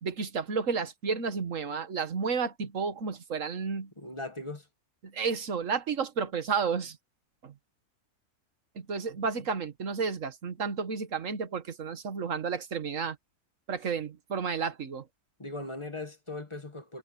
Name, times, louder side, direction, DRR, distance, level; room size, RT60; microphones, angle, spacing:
voice 1, 0.0-3.9 5.0-7.0 7.4-7.5 8.8-13.2 13.7-15.1, right 5 dB, 55° right, 1.8 m, -32 dB
voice 2, 4.0-4.7 15.4-17.0, left 2 dB, 20° left, 1.6 m, -39 dB
omnidirectional pair, 1.7 m